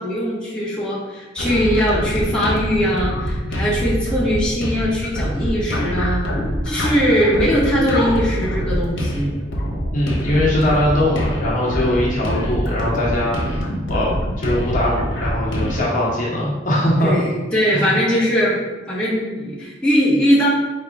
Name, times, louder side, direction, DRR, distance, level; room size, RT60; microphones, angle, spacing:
voice 1, 0.0-6.2 6.6-9.4 10.7-10.8 11.9-12.0 17.0-18.6 18.9-20.5, equal, 5° left, -9 dB, 1.0 m, -20 dB
sound 1, 1.4-15.8, equal, 80° left, 1.0 m, -24 dB
voice 2, 9.9-13.6 13.9-17.1 17.7-18.0, left 1 dB, 45° left, -5 dB, 1.0 m, -21 dB
4.6 x 2.8 x 3.4 m, 1.1 s
head